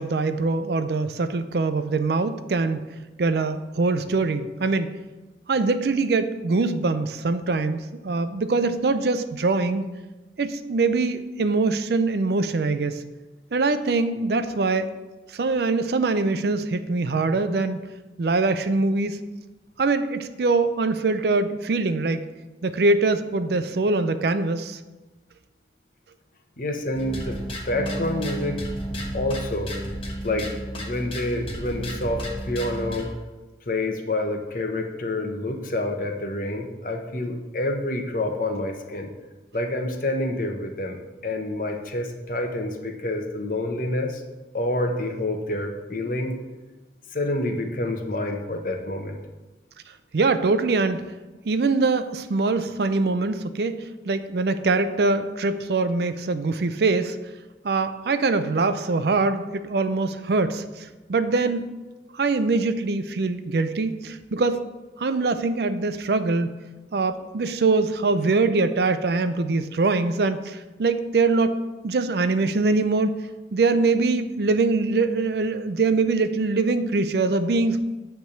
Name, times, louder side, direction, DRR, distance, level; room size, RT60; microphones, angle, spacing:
voice 1, 0.0-2.8 3.2-4.9 5.5-9.9 10.4-13.0 13.5-14.9 15.3-17.9 18.2-19.2 19.8-22.2 22.6-24.8 50.1-51.1 51.5-53.8 54.1-57.3 57.6-61.6 62.1-64.6 65.0-66.5 66.9-73.2 73.5-77.8, right 3 dB, 60° right, 11 dB, 0.5 m, -23 dB
voice 2, 26.6-28.7 29.1-29.7 30.2-30.5 30.8-33.1 33.7-39.1 39.5-41.0 41.2-44.2 44.5-46.3 47.1-49.2, left 1 dB, 45° left, 3 dB, 0.9 m, -28 dB
sound 1, 26.9-33.1, equal, 30° left, 1.2 m, -32 dB
9.2 x 3.4 x 6.9 m, 1.2 s
head